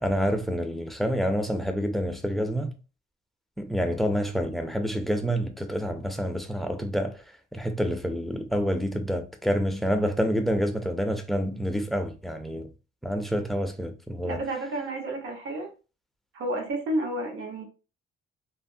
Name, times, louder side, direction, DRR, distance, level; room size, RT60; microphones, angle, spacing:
voice 1, 0.0-2.8 3.6-7.2 7.5-12.7 13.0-14.4, equal, ahead, 0.5 m, -28 dB
voice 2, 14.2-15.7 16.3-17.6, right 1 dB, 80° right, 1.1 m, -31 dB
3.3 x 2.0 x 2.6 m
cardioid pair, 90°, 20 cm